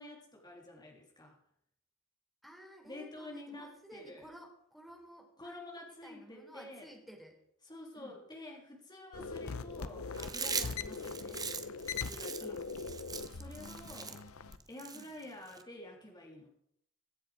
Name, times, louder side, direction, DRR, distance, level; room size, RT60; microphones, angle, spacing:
voice 1, 0.0-1.4 2.9-4.3 5.4-6.9 7.6-11.4 11.9-12.6 13.3-14.2 14.7-16.5, left 1 dB, 20° left, 0 dB, 3.6 m, -49 dB
voice 2, 2.4-7.4 7.9-8.2 10.9-11.2 12.4-12.7 13.6-14.2 14.9-15.1, right 1 dB, ahead, 0 dB, 4.1 m, -54 dB
sound 1, 9.1-14.6, left 4 dB, 80° left, 0.9 m, -41 dB
Chewing mastication, 10.1-15.6, right 5 dB, 20° right, 1.1 m, -41 dB
23.5 x 7.9 x 5.0 m, 0.71 s
head